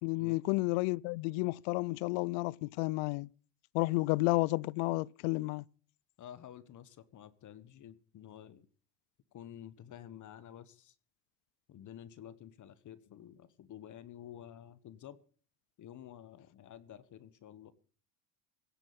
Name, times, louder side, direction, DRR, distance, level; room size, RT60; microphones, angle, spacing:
voice 1, 0.0-3.3 3.7-5.6, left 23 dB, 70° left, 0.6 m, -31 dB
voice 2, 6.2-8.7 9.3-10.9 11.7-15.2 15.8-17.7, left 10 dB, 40° left, 1.2 m, -51 dB
17.0 x 6.1 x 8.7 m
supercardioid pair, 100°, 45 cm